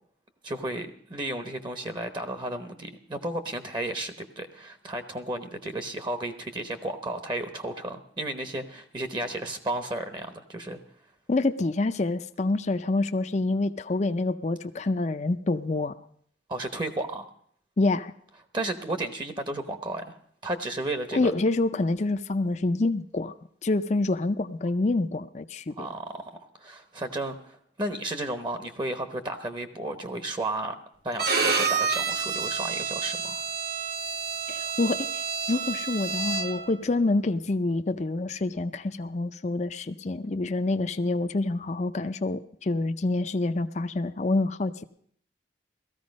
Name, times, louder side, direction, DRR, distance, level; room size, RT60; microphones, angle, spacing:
voice 1, 0.4-10.8 16.5-17.2 18.5-20.2 20.4-21.3 25.8-30.7 31.0-33.4, right 1 dB, 25° right, 8 dB, 0.9 m, -33 dB
voice 2, 11.3-15.9 17.8-18.1 21.1-23.3 23.6-25.9 34.5-44.8, left 2 dB, 40° left, 9 dB, 0.5 m, -27 dB
Bowed string instrument, 31.2-36.7, right 5 dB, 55° right, 1.1 m, -29 dB
17.0 x 14.0 x 5.3 m, 0.63 s
head